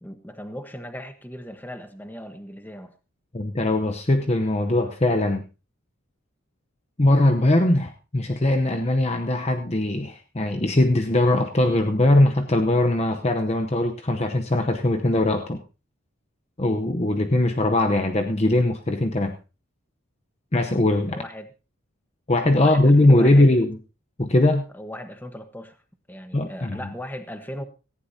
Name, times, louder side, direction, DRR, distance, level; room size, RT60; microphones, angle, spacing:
voice 1, 0.0-2.9 21.1-21.5 22.6-23.5 24.7-25.8 26.1-27.6, equal, 10° left, 8 dB, 1.1 m, -38 dB
voice 2, 3.3-5.4 7.0-15.6 16.6-19.3 20.5-21.2 22.3-23.8 24.2-24.6 26.3-26.8, left 1 dB, 30° left, 6 dB, 0.8 m, -20 dB
18.0 x 15.0 x 2.8 m, 0.31 s
head